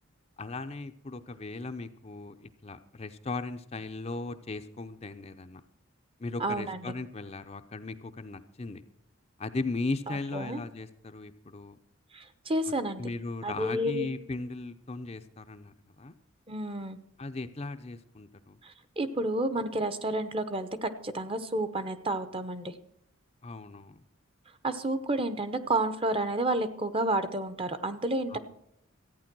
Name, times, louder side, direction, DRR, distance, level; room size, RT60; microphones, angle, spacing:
voice 1, 0.4-5.6 6.2-8.8 9.4-11.8 13.0-16.1 17.2-18.6 23.4-24.0 28.3-28.4, left 3 dB, 30° left, 8 dB, 0.6 m, -37 dB
voice 2, 6.4-6.9 10.1-10.6 12.1-13.0 13.4-14.1 16.5-17.0 18.6-22.7 24.6-28.4, right 1 dB, 25° right, 11 dB, 0.8 m, -30 dB
14.5 x 9.4 x 6.1 m, 0.75 s
head